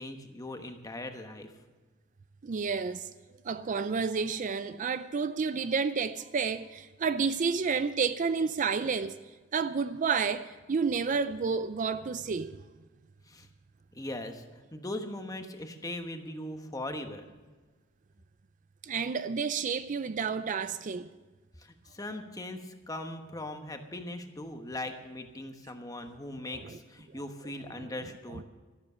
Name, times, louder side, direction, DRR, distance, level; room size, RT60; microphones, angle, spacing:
voice 1, 0.0-1.5 13.3-13.5 13.9-14.4 14.7-17.3 21.6-28.4, left 1 dB, 20° left, 1.1 m, -40 dB
voice 2, 2.4-3.1 3.4-9.2 9.5-12.6 18.8-21.1 26.5-26.7 28.3-28.4, right 5 dB, 40° right, 0.4 m, -30 dB
13.0 x 12.0 x 6.7 m
head